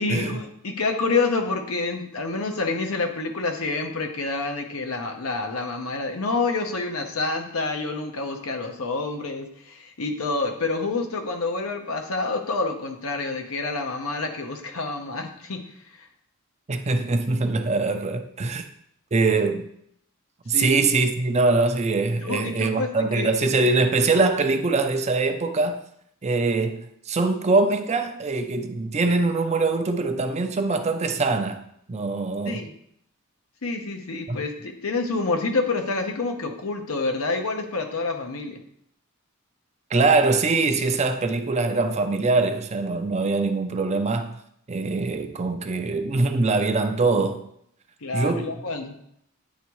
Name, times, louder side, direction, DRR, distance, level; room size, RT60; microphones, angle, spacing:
voice 1, 0.0-15.6 20.5-20.9 22.2-23.7 32.4-32.7 33.6-38.6 48.0-48.9, left 3 dB, 80° left, 0.9 m, -28 dB
voice 2, 16.7-18.6 19.1-19.7 20.5-25.8 26.2-31.6 31.9-32.7 34.3-34.4 39.9-44.4 44.7-47.4 48.1-48.5, right 3 dB, 30° right, 0.5 m, -23 dB
9.2 x 3.5 x 3.1 m
head